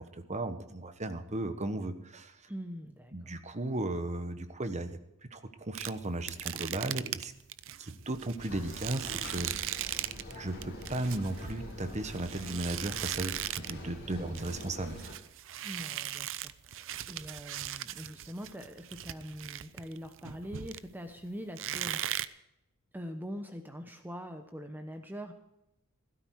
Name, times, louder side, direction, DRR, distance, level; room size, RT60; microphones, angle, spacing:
voice 1, 0.0-2.5 3.1-4.9 5.2-7.3 7.8-9.8 10.4-15.0, right 2 dB, 30° right, 9 dB, 1.2 m, -36 dB
voice 2, 2.5-3.1 14.2-14.5 15.6-22.0 22.9-25.3, equal, 10° right, 6 dB, 0.9 m, -43 dB
sound 1, 5.7-10.4 10.6-13.9 14.1-21.1 21.6-22.2, right 12 dB, 60° right, 0.6 m, -39 dB
sound 2, 8.4-15.1, left 1 dB, 50° left, 6.6 m, -45 dB
16.0 x 13.0 x 4.7 m, 0.86 s
head